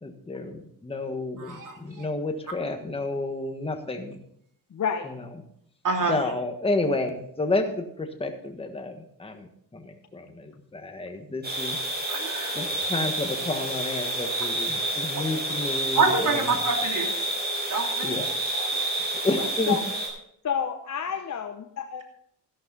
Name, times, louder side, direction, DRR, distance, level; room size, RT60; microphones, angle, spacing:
voice 1, 0.0-4.2 5.0-5.1 6.0-11.8 12.5-16.5 18.0-18.3 18.8-19.8, left 2 dB, 15° left, 5 dB, 1.5 m, -31 dB
voice 2, 1.4-2.0 5.8-6.2 12.1-12.6 15.9-17.1 17.7-18.1, right 4 dB, 50° right, 2 dB, 3.1 m, -26 dB
voice 3, 4.7-5.1 19.3-19.8 20.4-22.0, left 7 dB, 45° left, 5 dB, 1.0 m, -30 dB
sound 1, 11.4-20.1, right 1 dB, 25° right, 5.2 m, -29 dB
13.0 x 11.5 x 4.1 m, 0.69 s
cardioid pair, 100°, 39 cm